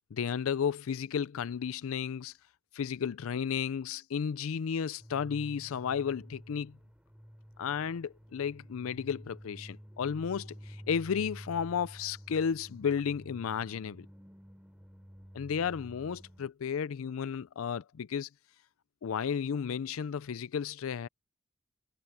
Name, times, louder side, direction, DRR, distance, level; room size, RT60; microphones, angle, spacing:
voice 1, 0.1-2.3 2.7-6.8 7.6-14.1 15.3-18.3 19.0-21.1, left 7 dB, 85° left, 0.4 m, -33 dB
sound 1, 5.0-16.5, equal, 5° right, 3.3 m, -50 dB
head